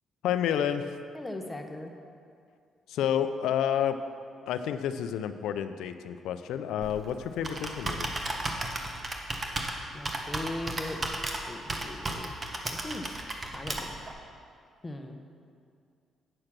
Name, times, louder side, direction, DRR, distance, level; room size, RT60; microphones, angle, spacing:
voice 1, 0.2-0.9 2.9-4.0 4.5-8.1, left 9 dB, 85° left, 10 dB, 0.5 m, -29 dB
voice 2, 1.1-1.9 9.9-11.0 11.4-12.3 12.7-13.3 13.5-13.9 14.8-15.2, left 1 dB, 15° left, 3 dB, 0.8 m, -39 dB
Computer keyboard, 6.8-14.1, right 2 dB, 30° right, 1.1 m, -35 dB
8.6 x 6.6 x 6.0 m, 2.3 s
cardioid pair, 90°, 0 cm